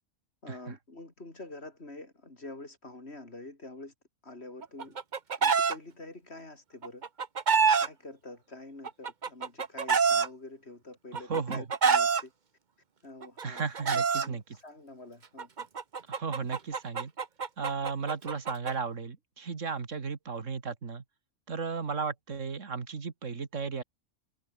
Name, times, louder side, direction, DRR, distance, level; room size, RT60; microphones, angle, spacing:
voice 1, 0.4-3.9 4.2-5.0 5.4-7.0 7.8-12.3 13.0-15.7, left 2 dB, 55° left, 4.4 m, -47 dB
Chicken rooster, 4.6-5.7 6.8-7.9 8.8-10.3 11.1-12.2 13.2-14.3 15.4-18.7, right 5 dB, 40° right, 1.1 m, -26 dB
voice 2, 11.1-11.6 13.4-14.4 16.1-17.1 17.6-21.0 21.5-23.8, right 5 dB, 80° right, 2.3 m, -35 dB
omnidirectional pair, 1.3 m